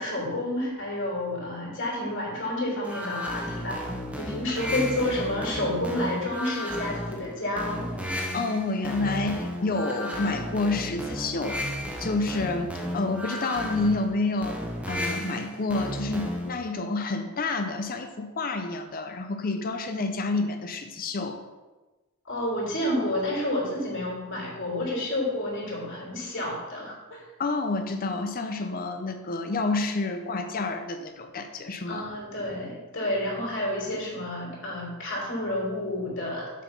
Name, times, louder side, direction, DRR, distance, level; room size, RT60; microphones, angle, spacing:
voice 1, 0.0-3.8 4.2-7.9 22.2-27.2 31.9-36.5, left 1 dB, 55° left, -3 dB, 3.2 m, -30 dB
sound 1, 2.8-16.6, equal, 5° right, 1.0 m, -34 dB
voice 2, 8.3-14.6 14.9-21.4 27.4-32.0, left 3 dB, 40° left, 7 dB, 0.6 m, -29 dB
7.5 x 5.8 x 5.4 m, 1.2 s
head